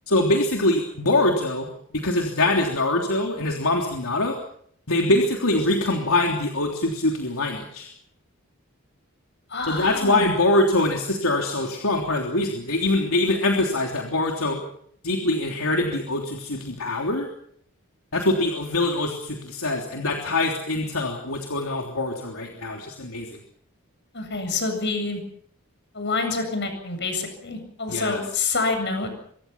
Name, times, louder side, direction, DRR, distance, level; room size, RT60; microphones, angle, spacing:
voice 1, 0.1-4.4 4.9-7.9 9.7-14.6 15.0-17.3 18.1-23.4 27.9-28.2, left 2 dB, 75° left, 1 dB, 3.4 m, -23 dB
voice 2, 9.5-10.3 24.1-25.2 25.9-29.1, left 3 dB, 50° left, 7 dB, 8.0 m, -27 dB
25.0 x 24.0 x 5.9 m, 0.65 s
head